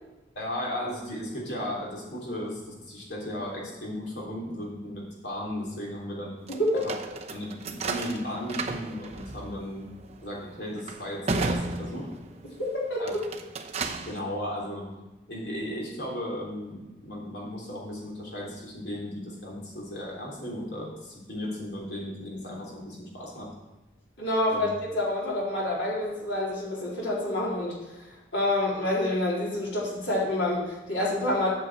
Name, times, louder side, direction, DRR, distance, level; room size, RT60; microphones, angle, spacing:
voice 1, 0.4-6.4 7.3-9.9 10.2-12.1 13.0-13.1 14.0-14.9 15.3-23.5 24.5-24.7, left 1 dB, 60° left, -3 dB, 3.5 m, -35 dB
voice 2, 6.5-6.8 12.6-13.2 24.2-27.8 28.3-31.5, left 1 dB, 85° left, -5 dB, 4.0 m, -27 dB
sound 1, 6.5-12.5 13.0-14.2, right 3 dB, 35° right, 0.8 m, -34 dB
8.7 x 6.6 x 7.5 m, 1.1 s
head